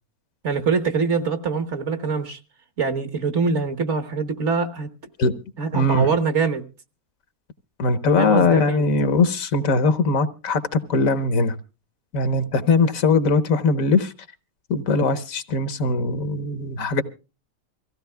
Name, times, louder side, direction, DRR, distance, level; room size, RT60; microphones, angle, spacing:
voice 1, 0.4-2.4 2.8-4.9 5.6-6.6 8.2-8.8, right 5 dB, 55° right, 1.4 m, -24 dB
voice 2, 5.7-6.1 7.8-10.6 10.9-11.5 12.1-14.1 14.7-17.0, left 3 dB, 70° left, 1.4 m, -20 dB
25.5 x 15.5 x 2.2 m
omnidirectional pair, 1.5 m